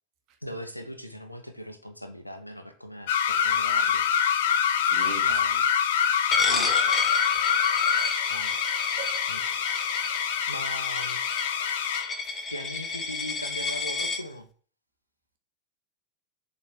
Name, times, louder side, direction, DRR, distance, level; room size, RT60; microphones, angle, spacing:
voice 1, 0.4-4.1 5.0-5.6 5.9-6.0 6.4-6.7 8.2-8.6 9.3-9.4 10.5-11.2 12.5-14.5, equal, 90° left, 0.9 m, -39 dB
sound 1, 3.1-12.1, left 8 dB, 55° left, 0.8 m, -25 dB
voice 2, 4.8-5.4 9.0-9.3 10.1-10.3 11.6-11.7 12.2-12.5, right 7 dB, 40° right, 1.8 m, -42 dB
Coin (dropping), 6.3-14.2, left 4 dB, 20° left, 1.1 m, -31 dB
7.3 x 3.9 x 6.3 m
figure-of-eight pair, 90°, 0 cm